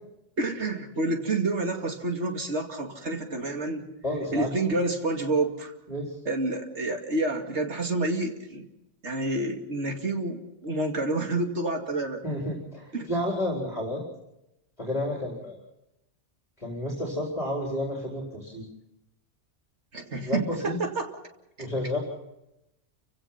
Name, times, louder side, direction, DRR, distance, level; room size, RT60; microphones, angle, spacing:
voice 1, 0.4-3.8 4.3-5.7 6.3-8.6 9.0-12.2 12.9-13.1 19.9-21.1, right 2 dB, 70° right, 3 dB, 2.7 m, -28 dB
voice 2, 4.0-4.5 5.9-6.2 12.2-14.0 14.8-15.6 16.6-18.7 20.2-20.8 21.6-22.0, left 1 dB, 35° left, -1 dB, 4.2 m, -31 dB
29.5 x 17.0 x 5.8 m, 0.89 s
omnidirectional pair, 1.2 m